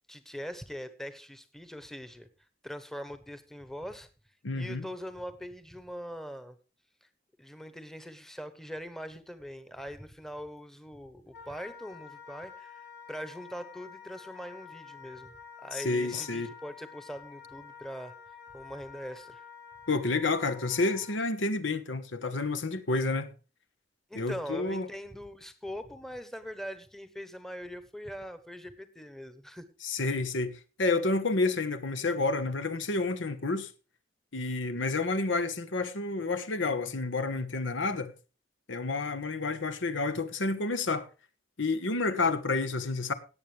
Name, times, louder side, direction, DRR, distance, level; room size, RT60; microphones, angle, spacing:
voice 1, 0.1-2.3 2.6-4.1 4.5-6.6 7.0-7.1 7.4-12.8 13.1-15.3 15.6-18.1 18.5-19.4 24.1-29.7 30.1-30.2, equal, ahead, 1.0 m, -42 dB
voice 2, 4.4-4.8 15.7-16.5 19.9-23.3 24.1-24.9 29.8-33.7 34.3-38.1 38.7-41.1 41.6-43.1, left 3 dB, 85° left, 1.2 m, -30 dB
Wind instrument woodwind instrument, 11.3-21.2, left 7 dB, 65° left, 4.3 m, -49 dB
17.5 x 8.2 x 3.3 m
head